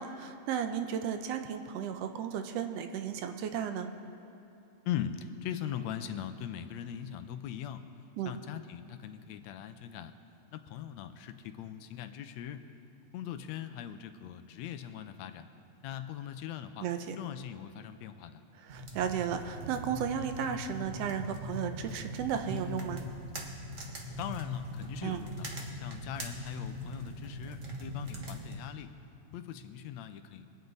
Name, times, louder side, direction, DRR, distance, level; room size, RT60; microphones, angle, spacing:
voice 1, 0.0-3.9 8.2-8.3 16.8-17.2 18.6-23.0 25.0-25.2, right 8 dB, 75° right, 7 dB, 1.6 m, -34 dB
voice 2, 4.9-7.8 8.3-10.2 10.5-12.7 13.1-15.5 15.8-16.9 17.2-18.4 24.2-25.5 25.8-28.9 29.3-30.5, left 10 dB, 75° left, 9 dB, 1.8 m, -40 dB
sound 1, 18.7-28.6, equal, 45° right, 1.0 m, -41 dB
24.0 x 9.1 x 4.0 m, 2.9 s
omnidirectional pair, 3.3 m